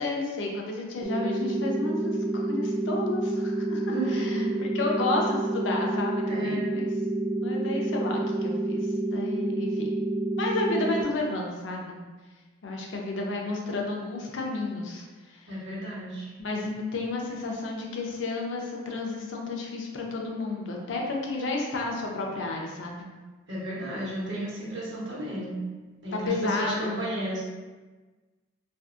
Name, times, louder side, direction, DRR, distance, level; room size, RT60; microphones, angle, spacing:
voice 1, 0.0-6.9 7.4-9.9 10.4-12.0 12.6-15.5 16.4-23.1 26.3-27.1, left 2 dB, 75° left, 0 dB, 0.5 m, -32 dB
sound 1, 1.0-11.0, right 2 dB, ahead, 0.4 m, -28 dB
voice 2, 3.8-4.6 6.3-6.7 15.5-16.3 23.5-25.6 26.0-27.4, right 1 dB, 65° right, -6 dB, 0.8 m, -33 dB
2.6 x 2.3 x 2.4 m, 1.3 s
head